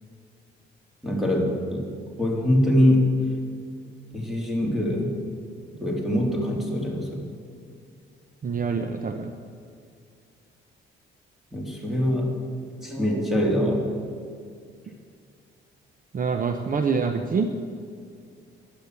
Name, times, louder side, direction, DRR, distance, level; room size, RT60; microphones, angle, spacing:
voice 1, 1.0-1.9 2.2-3.1 4.1-5.1 5.8-7.3 11.5-12.3 12.8-13.9, left 1 dB, ahead, -1 dB, 3.5 m, -23 dB
voice 2, 8.4-9.3 16.1-17.5, right 5 dB, 45° right, 6 dB, 0.9 m, -26 dB
12.0 x 10.5 x 8.3 m, 2.2 s
cardioid pair, 90°, 20 cm